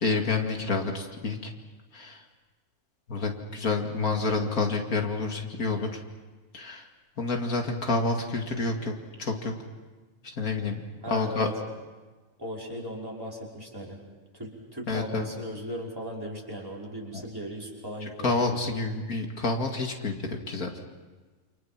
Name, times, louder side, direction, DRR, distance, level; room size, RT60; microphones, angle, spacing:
voice 1, 0.0-1.5 1.9-2.2 3.1-5.9 6.5-6.8 7.2-8.9 9.2-9.5 10.2-11.5 14.9-15.3 17.1-17.2 18.2-20.7, left 3 dB, 90° left, 3 dB, 2.8 m, -28 dB
voice 2, 11.0-11.5 12.4-14.0 14.3-18.8, equal, 15° right, -4 dB, 5.4 m, -37 dB
29.0 x 27.0 x 6.0 m, 1.3 s
omnidirectional pair, 1.5 m